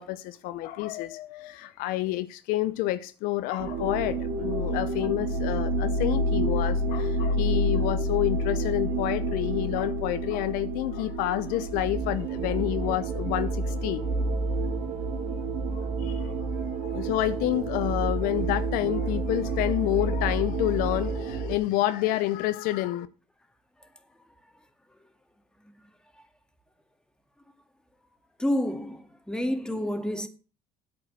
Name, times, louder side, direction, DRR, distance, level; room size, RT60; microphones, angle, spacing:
voice 1, 0.0-14.1 15.7-23.1, left 15 dB, 70° left, 0.8 m, -29 dB
sound 1, 3.6-21.6, right 2 dB, 65° right, 2.5 m, -29 dB
voice 2, 28.4-30.3, left 1 dB, 5° left, 2.0 m, -29 dB
8.6 x 7.8 x 7.4 m
supercardioid pair, 80°, 15 cm